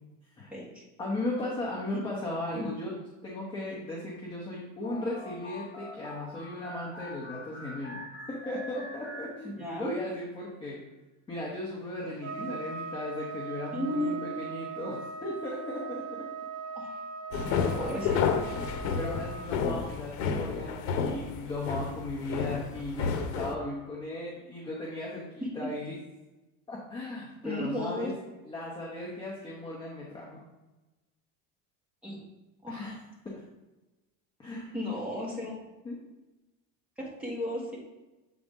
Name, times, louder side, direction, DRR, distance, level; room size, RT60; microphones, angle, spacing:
voice 1, 1.0-2.9 3.2-8.0 8.3-10.8 11.3-16.2 18.0-18.1 18.9-25.9 26.7-28.1 28.4-30.4 32.7-33.0 34.4-34.7 35.8-36.0, left 2 dB, 10° left, -4 dB, 0.9 m, -37 dB
sound 1, 4.8-9.9, left 1 dB, 30° left, 1.3 m, -44 dB
voice 2, 9.4-9.9 12.4-12.5 13.7-14.1 15.8-15.9 16.7-17.0 17.8-18.4 25.4-25.7 27.4-28.1 32.0-32.2 32.6-32.8 34.7-35.5 37.0-37.8, left 1 dB, 5° right, -6 dB, 1.6 m, -34 dB
Trumpet, 12.2-19.5, right 5 dB, 40° right, 0.9 m, -39 dB
sound 2, 17.3-23.6, left 6 dB, 75° left, 0.8 m, -31 dB
7.6 x 4.0 x 3.7 m, 1.1 s
cardioid pair, 160°, 40 cm